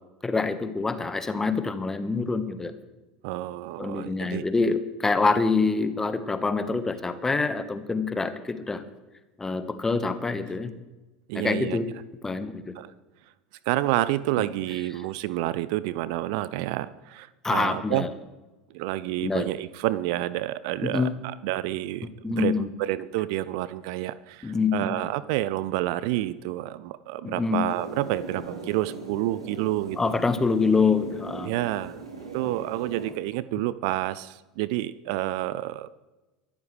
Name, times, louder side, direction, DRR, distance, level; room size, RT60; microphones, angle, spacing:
voice 1, 0.2-2.7 3.8-8.8 9.4-10.7 11.3-11.9 12.2-12.7 17.4-18.1 19.2-19.5 20.8-21.2 22.2-22.7 24.4-25.0 27.2-27.6 30.0-31.5, left 4 dB, 15° left, 10 dB, 1.4 m, -26 dB
voice 2, 3.2-4.4 5.2-5.3 11.3-11.8 12.7-12.9 13.7-18.1 18.7-30.1 31.4-32.0 32.3-35.9, right 15 dB, 50° right, 17 dB, 0.5 m, -29 dB
sound 1, 27.7-33.1, right 4 dB, 80° right, 4.3 m, -39 dB
23.5 x 12.5 x 3.4 m, 1.1 s
figure-of-eight pair, 75°, 3 cm